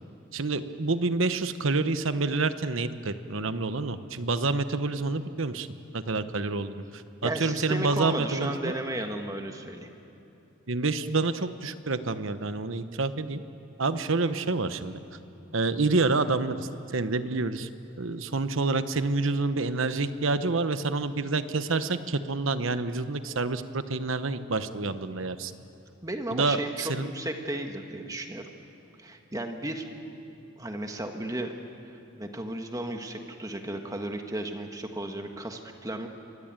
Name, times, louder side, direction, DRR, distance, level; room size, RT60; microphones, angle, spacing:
voice 1, 0.3-5.7 5.9-8.7 10.7-13.4 13.8-15.0 15.5-17.7 18.0-25.5 26.3-27.1, right 3 dB, 70° right, 11 dB, 1.0 m, -28 dB
voice 2, 7.2-9.9 26.0-28.5 29.0-29.9 30.6-31.5 32.2-36.1, right 1 dB, 15° right, 4 dB, 1.6 m, -34 dB
25.5 x 21.0 x 9.0 m, 2.9 s
head